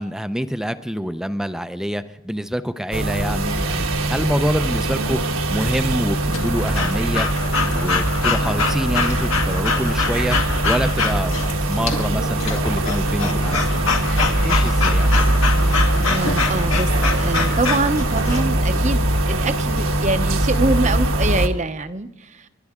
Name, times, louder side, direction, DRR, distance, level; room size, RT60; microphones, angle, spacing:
voice 1, 0.0-5.2 5.5-7.3 7.7-10.4 10.6-11.4 11.6-15.2, equal, 5° right, 10 dB, 0.5 m, -26 dB
sound 1, 2.9-21.5, right 1 dB, 70° right, 1.3 m, -21 dB
Breathing / Dog, 6.3-18.4, left 4 dB, 70° left, 2.1 m, -25 dB
voice 2, 16.0-22.5, right 2 dB, 35° right, 10 dB, 0.8 m, -24 dB
29.0 x 12.0 x 3.7 m, 0.96 s
head